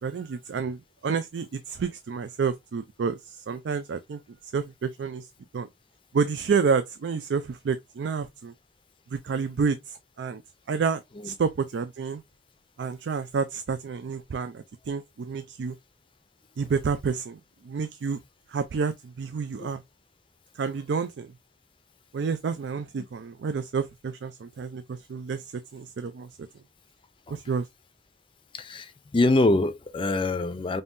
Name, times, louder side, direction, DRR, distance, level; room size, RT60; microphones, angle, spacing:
voice 1, 0.0-5.3 5.5-5.7 6.1-8.5 9.1-10.4 10.7-12.2 12.8-15.8 16.6-17.4 17.6-18.2 18.5-19.8 20.6-21.3 22.1-25.4 25.7-26.3 27.3-27.7, right 5 dB, 75° right, 0.4 m, -29 dB
voice 2, 28.5-30.8, left 2 dB, 30° left, 0.4 m, -24 dB
5.3 x 2.7 x 2.5 m
head